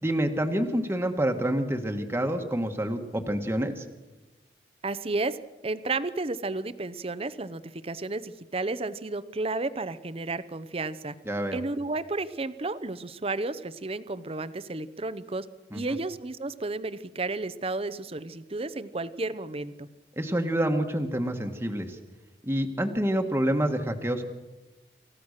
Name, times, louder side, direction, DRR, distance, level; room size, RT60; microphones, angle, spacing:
voice 1, 0.0-3.8 11.2-11.6 15.7-15.8 20.2-22.0 22.4-24.2, right 1 dB, 15° right, 4 dB, 1.4 m, -27 dB
voice 2, 4.8-5.4 5.6-11.1 11.5-15.5 15.7-19.9, right 3 dB, 35° right, 14 dB, 0.8 m, -32 dB
27.5 x 15.0 x 6.6 m, 1.1 s
head